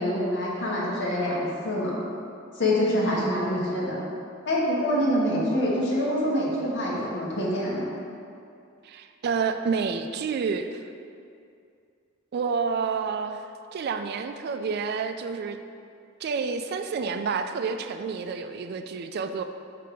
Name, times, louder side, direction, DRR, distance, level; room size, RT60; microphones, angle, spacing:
voice 1, 0.0-2.0 2.5-4.0 4.4-7.9, left 1 dB, 60° left, -5 dB, 1.4 m, -26 dB
voice 2, 3.0-3.4 8.8-10.8 12.3-13.4 13.7-15.6 16.2-19.4, right 5 dB, 55° right, 8 dB, 0.3 m, -29 dB
6.8 x 3.3 x 5.0 m, 2.4 s
head